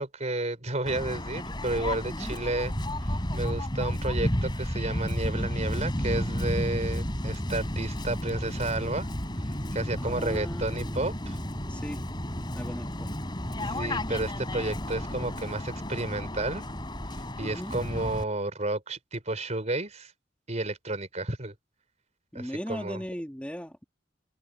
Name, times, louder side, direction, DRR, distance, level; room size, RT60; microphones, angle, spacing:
voice 1, 0.0-2.7 3.0-9.1 9.7-11.4 13.6-16.6 17.4-20.1 20.5-21.5 22.3-23.0, right 2 dB, 40° right, 4.1 m, -31 dB
Waves surf, 0.8-18.2, left 1 dB, 25° left, 4.7 m, -32 dB
voice 2, 2.1-2.4 10.0-11.3 11.7-12.0 12.5-13.1 17.4-17.7 22.3-23.8, equal, 5° left, 3.1 m, -38 dB
open air
head